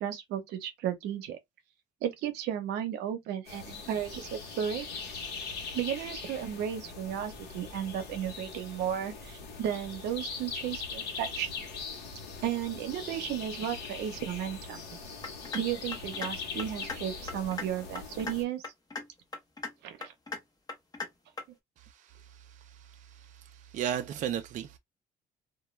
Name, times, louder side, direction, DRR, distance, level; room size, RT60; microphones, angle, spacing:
voice 1, 0.0-1.4 2.0-5.0 5.7-11.5 12.4-14.8 15.5-18.6 19.8-20.1, right 10 dB, 85° right, 0.7 m, -34 dB
sound 1, 3.5-18.4, left 5 dB, 75° left, 0.9 m, -41 dB
sound 2, 15.2-15.6 15.9-16.3 16.6-17.0 17.3-17.7 18.0-18.3 18.6-19.1 19.3-19.7 20.0-20.4 20.7-21.1 21.4-21.5, left 4 dB, 20° left, 0.8 m, -37 dB
voice 2, 21.8-24.8, right 9 dB, 50° right, 0.4 m, -37 dB
2.2 x 2.2 x 3.0 m
cardioid pair, 110°, 17 cm